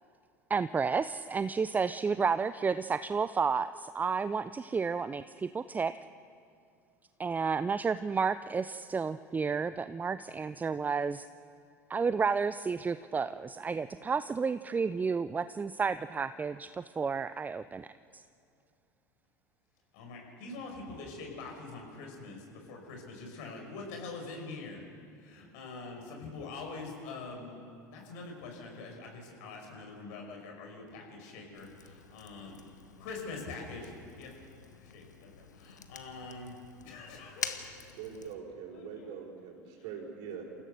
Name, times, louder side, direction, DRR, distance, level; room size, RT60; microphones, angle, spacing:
voice 1, 0.5-5.9 7.2-11.3 11.9-17.9 18.1-18.2, right 5 dB, 20° right, 13 dB, 0.5 m, -31 dB
voice 2, 19.9-24.8 25.2-27.6 27.9-32.6 33.0-34.4 34.8-35.3 35.5-36.6 36.8-37.7 38.7-39.2 39.8-39.9, left 3 dB, 65° left, 2 dB, 5.5 m, -44 dB
Fire, 31.5-38.3, left 6 dB, 85° left, 1.1 m, -46 dB
voice 3, 37.9-40.5, right 7 dB, 60° right, -1 dB, 4.9 m, -43 dB
28.0 x 16.0 x 6.7 m, 2.4 s
figure-of-eight pair, 75°, 9 cm